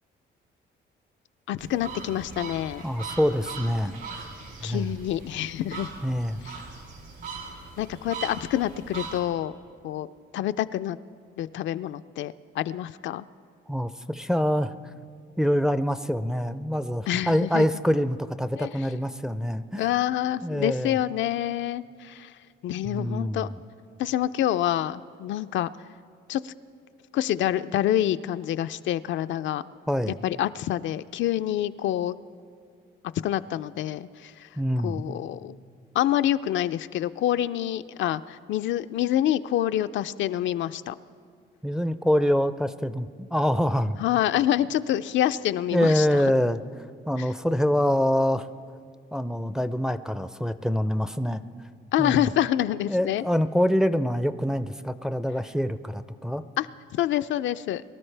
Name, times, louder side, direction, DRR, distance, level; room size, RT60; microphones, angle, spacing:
voice 1, 1.5-2.8 4.6-5.9 6.4-6.5 7.8-9.5 9.8-10.1 10.3-11.0 11.4-13.3 17.1-17.7 18.6-18.9 19.8-23.5 24.0-25.7 26.3-26.5 27.1-29.6 30.2-32.2 33.2-35.6 35.9-41.0 44.0-46.2 47.2-47.3 51.9-53.2 56.6-56.7 56.9-57.8, left 12 dB, 70° left, 11 dB, 0.4 m, -27 dB
sound 1, 1.6-9.2, right 5 dB, 65° right, 3.3 m, -40 dB
voice 2, 2.8-4.3 4.6-4.9 6.0-6.4 13.7-14.7 15.4-19.8 20.4-21.0 22.8-23.5 29.9-30.2 34.6-35.2 41.6-44.0 45.7-46.6 47.1-48.5 49.1-51.4 52.0-52.3 52.9-56.4, equal, 5° right, 12 dB, 0.4 m, -25 dB
23.0 x 12.5 x 3.3 m, 2.2 s
cardioid pair, 90°, 20 cm